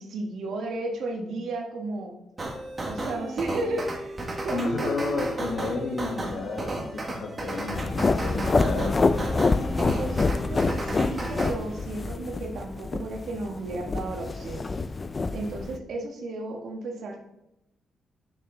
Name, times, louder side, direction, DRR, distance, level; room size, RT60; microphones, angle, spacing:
voice 1, 0.0-2.2 2.9-4.9 9.8-14.7 15.3-17.3, right 2 dB, 75° right, 2 dB, 1.5 m, -33 dB
sound 1, 2.4-11.5, right 2 dB, 30° right, 1.7 m, -33 dB
voice 2, 4.5-9.3, left 3 dB, 70° left, 2 dB, 1.4 m, -32 dB
sound 2, 7.7-15.8, left 3 dB, 35° left, 0.5 m, -27 dB
6.7 x 6.4 x 3.8 m, 0.86 s
cardioid pair, 90°, 0 cm